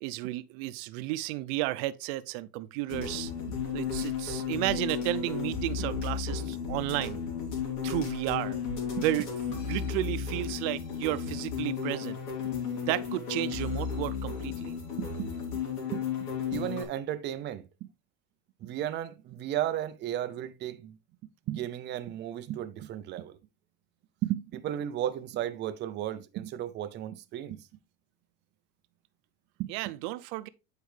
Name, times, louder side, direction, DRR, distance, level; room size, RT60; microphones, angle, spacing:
voice 1, 0.0-3.3 3.7-7.2 7.8-8.6 9.0-12.2 12.8-14.7 29.7-30.5, right 16 dB, 60° right, 0.6 m, -33 dB
sound 1, 2.9-16.8, left 6 dB, 85° left, 2.8 m, -34 dB
voice 2, 15.0-15.3 15.9-16.0 16.5-17.6 18.6-21.0 21.5-23.4 24.2-27.6 29.6-29.7, right 12 dB, 25° right, 0.4 m, -34 dB
8.3 x 4.6 x 3.2 m
supercardioid pair, 145°, 44 cm